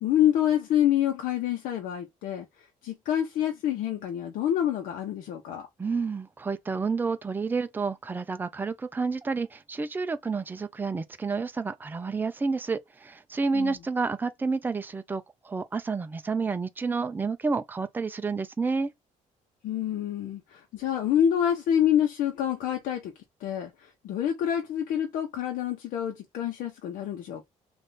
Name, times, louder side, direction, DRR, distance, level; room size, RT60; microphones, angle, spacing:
voice 1, 0.0-2.5 2.8-5.7 13.5-13.8 19.6-23.1 23.4-27.4, left 10 dB, 85° left, 0.9 m, -27 dB
voice 2, 5.8-18.9, right 4 dB, 15° right, 0.5 m, -30 dB
3.4 x 2.6 x 3.9 m
cardioid pair, 130°, 13 cm